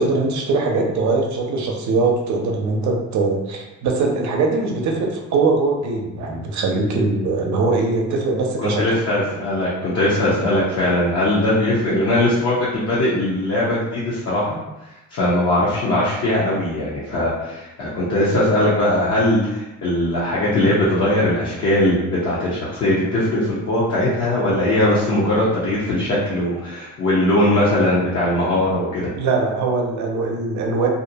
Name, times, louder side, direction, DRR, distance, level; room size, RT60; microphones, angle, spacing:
voice 1, 0.0-8.8 29.2-30.9, right 3 dB, 70° right, 1 dB, 0.6 m, -21 dB
voice 2, 8.6-14.5 15.1-29.1, left 1 dB, 55° left, -7 dB, 0.8 m, -20 dB
2.6 x 2.1 x 2.7 m, 1.0 s
cardioid pair, 90°, 30 cm